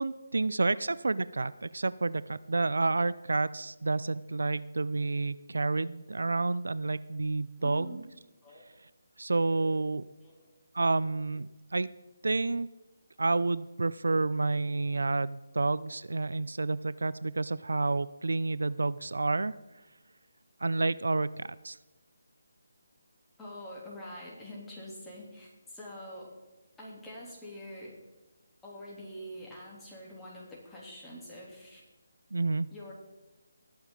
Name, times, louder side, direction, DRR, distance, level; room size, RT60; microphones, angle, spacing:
voice 1, 0.0-8.0 9.2-10.1 10.7-11.9 12.2-12.7 13.2-19.5 20.6-21.8 32.3-32.7, right 3 dB, 75° right, 17 dB, 0.4 m, -29 dB
voice 2, 7.6-8.1 8.4-8.7 10.2-10.5 23.4-26.3 26.8-27.9 28.6-31.8 32.7-32.9, equal, 5° left, -6 dB, 3.1 m, -45 dB
20.0 x 7.1 x 3.9 m, 1.1 s
figure-of-eight pair, 155°, 0 cm